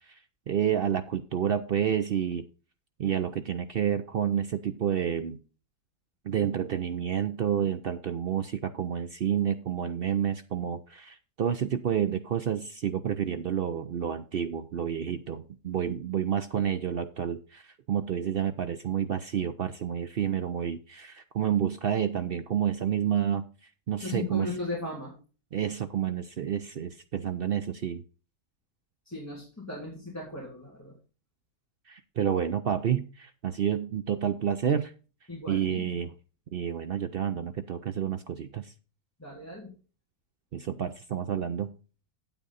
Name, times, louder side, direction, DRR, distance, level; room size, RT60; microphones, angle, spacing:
voice 1, 0.5-2.4 3.0-5.4 6.2-23.5 23.9-24.5 25.5-28.0 31.9-34.9 35.5-36.1 36.5-38.7 40.5-41.7, right 9 dB, 70° right, 10 dB, 0.5 m, -29 dB
voice 2, 24.0-25.1 29.1-30.9 35.3-35.8 39.2-39.7, left 2 dB, 10° left, -4 dB, 2.9 m, -37 dB
9.1 x 8.5 x 4.0 m, 0.35 s
omnidirectional pair, 1.6 m